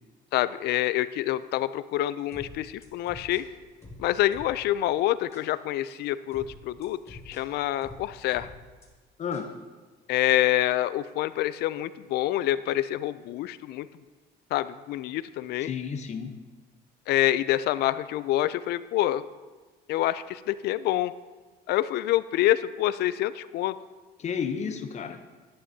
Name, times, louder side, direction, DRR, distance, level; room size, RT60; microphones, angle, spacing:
voice 1, 0.3-3.4 4.0-8.5 10.1-13.9 14.5-15.7 17.1-19.2 19.9-21.1 21.7-23.7, left 14 dB, 75° left, 15 dB, 0.4 m, -27 dB
sound 1, 2.3-4.8 5.3-5.5 6.3-8.9 9.3-9.5, left 1 dB, 15° left, 1.9 m, -47 dB
voice 2, 9.2-9.5 15.6-16.4 24.2-25.2, left 6 dB, 40° left, 7 dB, 0.8 m, -32 dB
11.5 x 9.9 x 2.8 m, 1.3 s
cardioid pair, 110°, 17 cm